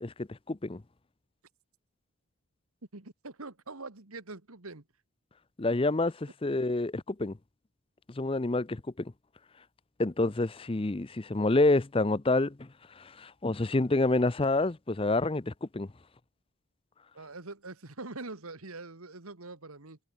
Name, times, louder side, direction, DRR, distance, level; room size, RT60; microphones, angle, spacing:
voice 1, 0.0-0.8 5.6-7.4 8.2-9.1 10.0-12.7 13.0-15.9, left 2 dB, 25° left, 0.5 m, -28 dB
voice 2, 2.9-4.8 17.1-20.0, right 3 dB, 80° right, 2.0 m, -43 dB
head